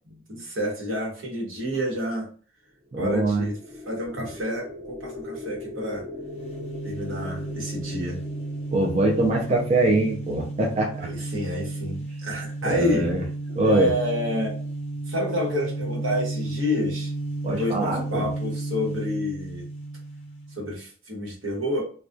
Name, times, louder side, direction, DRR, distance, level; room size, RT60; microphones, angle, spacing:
voice 1, 0.1-2.3 2.9-3.5 3.9-6.1 6.8-8.2 11.0-13.1 13.6-14.6 15.1-17.1 17.6-19.6 20.6-21.8, left 1 dB, 80° right, -1 dB, 1.0 m, -29 dB
sound 1, 2.8-10.9, left 2 dB, ahead, 0.7 m, -41 dB
voice 2, 2.9-3.5 8.7-11.1 12.6-13.2 13.5-13.9 17.4-18.3, right 2 dB, 35° right, -1 dB, 0.4 m, -23 dB
sound 2, 6.2-20.7, right 2 dB, 30° left, 0.5 m, -33 dB
2.2 x 2.2 x 2.5 m, 0.41 s
head